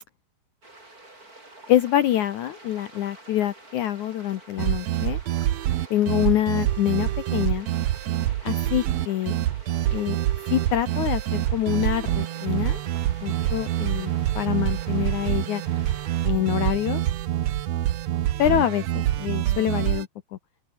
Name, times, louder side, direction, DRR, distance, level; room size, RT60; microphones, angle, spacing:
sound 1, 0.6-16.3, right 2 dB, 20° right, 7.2 m, -48 dB
voice 1, 1.7-5.2 5.9-7.7 8.4-9.4 9.9-10.2 10.5-12.8 13.2-15.6 16.2-17.0 18.4-18.8 19.2-20.1, left 12 dB, 70° left, 1.9 m, -25 dB
sound 2, 4.6-20.0, right 13 dB, 85° right, 1.5 m, -26 dB
open air
omnidirectional pair, 4.5 m